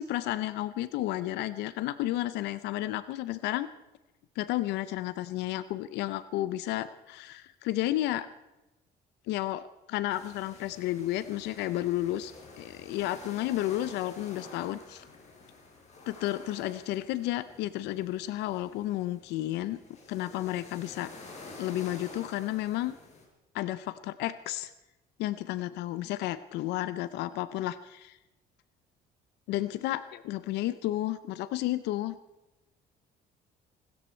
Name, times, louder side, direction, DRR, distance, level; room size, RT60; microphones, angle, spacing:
voice 1, 0.0-3.7 4.4-8.3 9.3-15.0 16.1-19.8 20.1-21.1 21.6-22.9 23.5-24.7 25.2-28.2 29.5-32.2, left 15 dB, 90° left, 15 dB, 0.7 m, -32 dB
sound 1, 10.1-23.2, left 3 dB, 40° left, 5.0 m, -50 dB
22.5 x 13.5 x 4.4 m, 1.0 s
cardioid pair, 110°, 17 cm